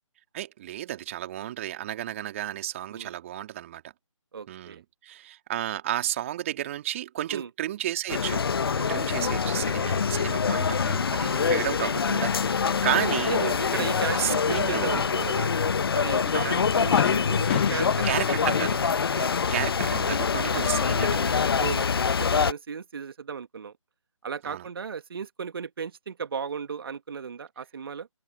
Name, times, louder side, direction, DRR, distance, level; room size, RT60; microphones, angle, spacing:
voice 1, 0.3-3.8 4.5-8.4 8.8-13.4 14.1-15.1 16.3-16.7 18.0-18.8 19.1-21.5 24.4-24.7, right 12 dB, 25° right, 2.8 m, -32 dB
voice 2, 4.3-4.8 7.3-7.5 8.8-9.2 13.3-15.6 15.9-18.1 19.1-19.3 20.5-20.7 21.6-22.0 22.3-23.7 24.2-28.1, right 6 dB, 45° right, 1.9 m, -35 dB
sound 1, 8.1-22.5, left 6 dB, 45° left, 1.1 m, -25 dB
Fireworks, 16.9-20.7 21.0-21.9, left 12 dB, 20° left, 1.3 m, -33 dB
figure-of-eight pair, 155°, 17 cm